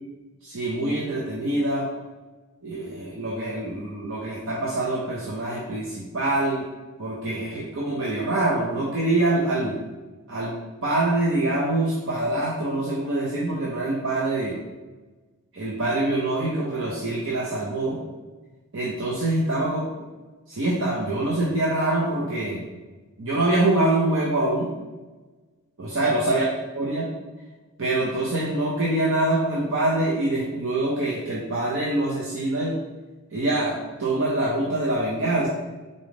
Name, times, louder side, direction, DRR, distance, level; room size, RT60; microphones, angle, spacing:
voice 1, 0.4-1.9 2.6-6.7 7.0-9.8 10.3-10.5 10.8-14.5 15.5-18.0 18.7-19.8 20.5-22.6 23.2-24.7 25.8-26.4 26.7-27.1 27.8-32.8 33.3-35.5, right 2 dB, 60° right, -5 dB, 0.7 m, -25 dB
3.9 x 3.5 x 3.7 m, 1.2 s
head